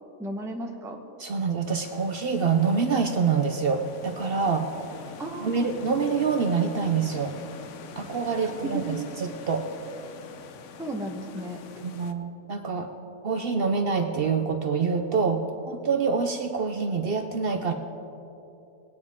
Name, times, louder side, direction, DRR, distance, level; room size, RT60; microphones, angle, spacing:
voice 1, 0.2-1.0 5.2-5.7 8.4-9.0 10.8-11.6, right 1 dB, 5° right, 2 dB, 0.7 m, -34 dB
voice 2, 1.2-4.7 5.4-7.3 8.0-9.7 11.8-12.9 13.2-17.7, right 5 dB, 60° right, 6 dB, 0.6 m, -26 dB
sound 1, 1.8-12.1, left 6 dB, 65° left, 0.9 m, -44 dB
20.0 x 9.6 x 3.6 m, 3.0 s
omnidirectional pair, 1.6 m